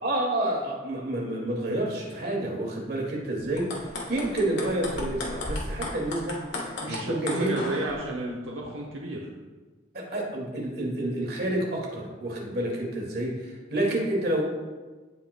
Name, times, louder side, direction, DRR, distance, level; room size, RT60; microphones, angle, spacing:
voice 1, 0.0-3.7 4.1-6.4 6.8-7.6 9.9-14.4, right 1 dB, 50° right, -2 dB, 2.0 m, -29 dB
sound 1, 3.6-7.9, left 2 dB, 70° left, 1.4 m, -35 dB
voice 2, 6.9-9.3, right 1 dB, 85° right, -2 dB, 1.0 m, -32 dB
15.5 x 5.4 x 2.2 m, 1.3 s
head